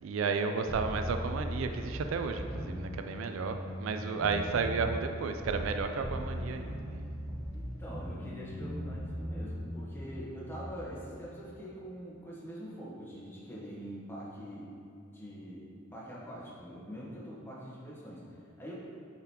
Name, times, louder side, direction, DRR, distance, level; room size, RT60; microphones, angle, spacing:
voice 1, 0.0-7.1, right 5 dB, 70° right, 7 dB, 0.3 m, -33 dB
sound 1, 0.7-5.7 6.0-10.8, equal, 5° right, 0.7 m, -39 dB
voice 2, 7.5-14.7 15.1-18.7, equal, 10° left, -6 dB, 1.2 m, -44 dB
8.8 x 3.9 x 2.9 m, 2.7 s
head